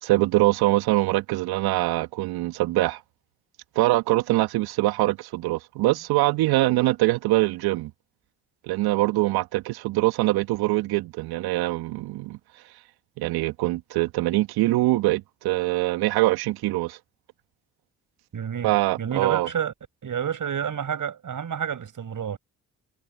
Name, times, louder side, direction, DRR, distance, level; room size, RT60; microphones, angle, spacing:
voice 1, 0.0-3.0 3.8-7.9 8.6-12.4 13.2-17.0 18.6-19.5, right 18 dB, 70° right, 1.9 m, -23 dB
voice 2, 18.3-18.7 19.0-19.7 20.0-22.4, right 8 dB, 55° right, 6.2 m, -29 dB
hypercardioid pair, 45°, 39 cm